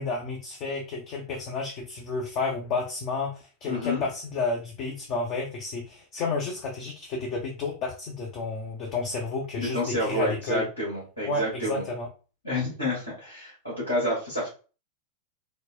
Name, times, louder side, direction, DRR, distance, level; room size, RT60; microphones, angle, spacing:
voice 1, 0.0-10.7 11.2-12.1, left 3 dB, 40° left, 0 dB, 0.6 m, -31 dB
voice 2, 3.7-4.0 9.6-11.8 12.4-14.5, left 1 dB, 85° left, -9 dB, 1.7 m, -29 dB
3.9 x 2.1 x 2.3 m, 0.35 s
figure-of-eight pair, 90°, 0 cm